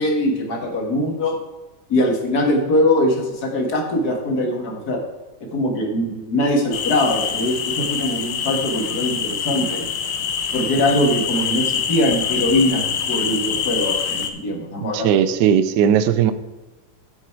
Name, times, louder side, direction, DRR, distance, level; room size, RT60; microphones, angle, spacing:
voice 1, 0.0-1.4 1.9-5.0 5.5-9.9 10.5-15.3, left 1 dB, 60° left, 2 dB, 2.2 m, -22 dB
sound 1, 6.7-14.3, left 7 dB, 80° left, 1.5 m, -25 dB
voice 2, 14.9-16.3, right 9 dB, 75° right, 12 dB, 1.2 m, -17 dB
9.0 x 8.2 x 4.7 m, 1.1 s
omnidirectional pair, 2.0 m